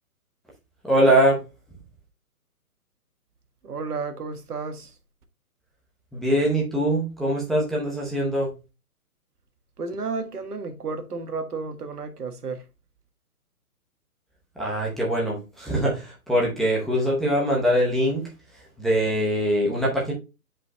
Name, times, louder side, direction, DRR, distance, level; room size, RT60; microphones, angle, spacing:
voice 1, 0.8-1.4 6.1-8.5 14.6-18.3 18.8-20.1, equal, ahead, 0.8 m, -22 dB
voice 2, 3.6-4.9 9.8-12.6, right 4 dB, 80° right, 1.5 m, -32 dB
9.5 x 5.2 x 2.2 m
hypercardioid pair, 140°, 46 cm